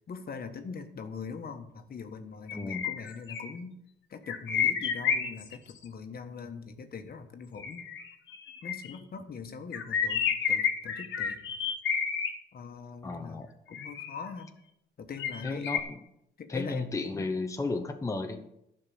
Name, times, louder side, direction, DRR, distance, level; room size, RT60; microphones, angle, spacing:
voice 1, 0.1-3.8 4.1-7.8 8.6-11.4 12.5-13.4 13.7-14.5 15.0-15.7 16.4-16.9 17.1-17.3, left 5 dB, 50° left, 6 dB, 1.5 m, -42 dB
sound 1, 2.5-3.5 4.2-5.7 7.6-9.0 9.7-12.3 13.7-14.3 15.2-15.8, left 7 dB, 70° left, 1.6 m, -30 dB
voice 2, 2.5-2.9 13.0-13.5 15.4-16.0 16.5-18.5, left 3 dB, 15° left, 5 dB, 0.9 m, -34 dB
11.5 x 5.9 x 8.7 m, 0.81 s
cardioid pair, 90°, 20 cm